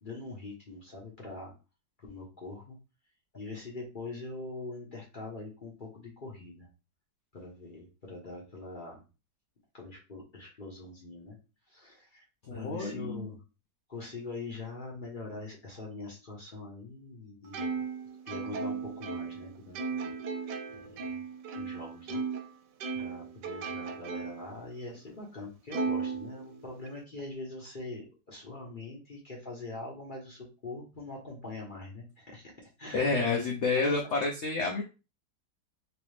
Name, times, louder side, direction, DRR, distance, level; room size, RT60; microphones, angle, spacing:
voice 1, 0.0-1.5 2.0-2.8 3.3-6.7 7.3-9.0 9.7-11.4 11.7-12.2 12.5-13.4 13.9-17.8 18.3-20.1 20.7-21.2 21.5-22.2 23.0-33.3, left 2 dB, 40° left, -3 dB, 0.8 m, -43 dB
voice 2, 12.5-13.3 32.9-34.8, left 3 dB, 65° left, 0 dB, 0.7 m, -29 dB
Plucked string instrument, 17.5-22.5 22.8-24.5 25.0-25.1 25.7-26.9, right 4 dB, 75° right, 1.1 m, -36 dB
3.0 x 3.0 x 3.2 m, 0.31 s
omnidirectional pair, 1.9 m